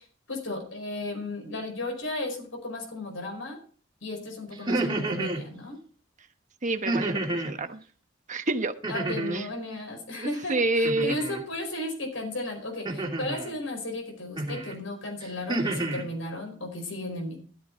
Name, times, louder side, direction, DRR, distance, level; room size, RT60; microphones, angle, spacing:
voice 1, 0.0-3.6 4.0-5.8 8.9-17.4, left 2 dB, 80° left, 4 dB, 4.9 m, -35 dB
sound 1, 4.5-5.4 6.9-7.5 8.8-9.5 10.8-11.4 12.9-13.5 14.4-14.7 15.2-16.0, right 2 dB, 25° right, 2.8 m, -29 dB
voice 2, 6.6-7.8 8.3-8.7 9.3-9.4 10.2-11.2, right 2 dB, 40° right, 8 dB, 1.1 m, -28 dB
13.5 x 13.0 x 3.9 m, 0.41 s
head